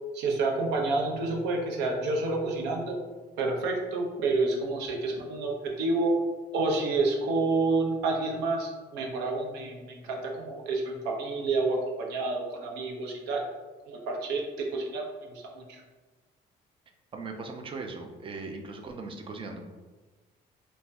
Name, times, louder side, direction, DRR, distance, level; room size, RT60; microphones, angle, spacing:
voice 1, 0.1-3.0 3.4-6.1 6.5-13.4 13.9-15.8, right 3 dB, 90° right, 0 dB, 0.6 m, -29 dB
voice 2, 17.1-19.6, right 3 dB, 30° right, 4 dB, 0.4 m, -39 dB
2.5 x 2.1 x 3.3 m, 1.3 s
cardioid pair, 110°, 17 cm